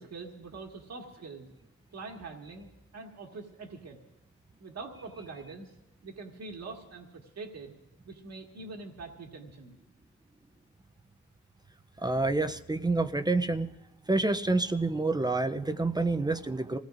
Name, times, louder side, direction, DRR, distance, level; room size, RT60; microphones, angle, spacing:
voice 1, 0.0-1.5 1.9-4.0 4.6-5.7 6.0-7.7 8.0-9.7, right 3 dB, 60° right, 1 dB, 1.8 m, -44 dB
voice 2, 12.0-13.7 14.1-16.8, right 2 dB, 15° right, 9 dB, 0.5 m, -28 dB
26.5 x 17.5 x 2.5 m, 0.89 s
cardioid pair, 115°, 30 cm